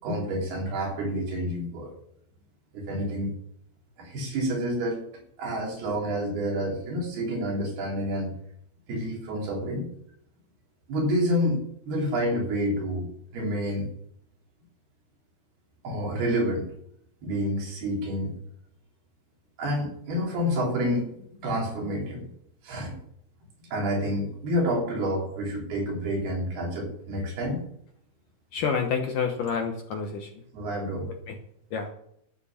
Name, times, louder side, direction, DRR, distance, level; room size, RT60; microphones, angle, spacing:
voice 1, 0.0-1.9 2.7-3.3 4.0-5.0 5.4-8.3 8.9-9.9 10.9-11.6 11.9-13.9 15.8-16.7 17.2-18.3 19.6-21.1 21.4-22.3 22.6-23.0 23.7-27.6 30.5-31.1, equal, 65° right, -2 dB, 5.3 m, -28 dB
voice 2, 28.5-30.3 31.3-31.4 31.7-31.9, left 6 dB, 70° left, 4 dB, 2.2 m, -28 dB
12.0 x 8.4 x 7.3 m, 0.72 s
omnidirectional pair, 4.9 m